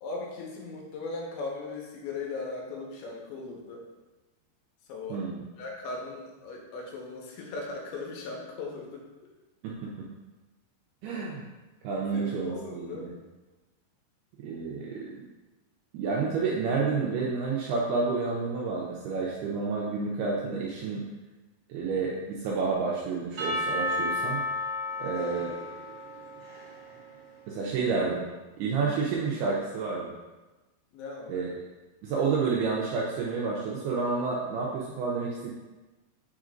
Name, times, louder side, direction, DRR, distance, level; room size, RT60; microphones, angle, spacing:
voice 1, 0.0-3.8 4.9-5.2 5.6-9.3 12.1-13.1 21.7-22.1 25.0-25.3 30.9-31.5, left 3 dB, 80° left, -1 dB, 3.2 m, -38 dB
voice 2, 5.1-5.4 9.6-9.9 11.0-11.4 11.8-13.1 14.4-15.1 15.9-21.0 21.7-24.4 25.0-25.5 27.5-28.3 28.6-30.1 31.3-31.5 32.0-35.5, right 4 dB, 80° right, -3 dB, 2.3 m, -30 dB
Percussion / Church bell, 23.4-27.5, left 2 dB, 45° right, 1.9 m, -33 dB
7.4 x 6.0 x 2.5 m, 1.2 s
omnidirectional pair, 5.3 m